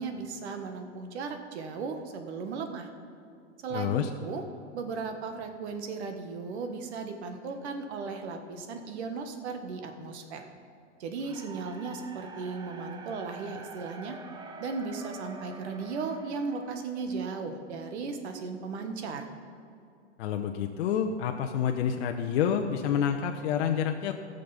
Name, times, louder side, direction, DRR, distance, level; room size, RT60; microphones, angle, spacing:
voice 1, 0.0-2.9 3.6-3.9 4.2-4.4 4.7-10.4 11.0-14.2 14.6-19.2, right 4 dB, 65° right, 6 dB, 1.5 m, -36 dB
voice 2, 3.7-4.1 20.2-24.1, left 8 dB, 60° left, 4 dB, 0.8 m, -28 dB
sound 1, 11.2-17.3, right 3 dB, 10° right, 0.8 m, -46 dB
15.5 x 6.6 x 5.7 m, 2.5 s
hypercardioid pair, 110°, 35 cm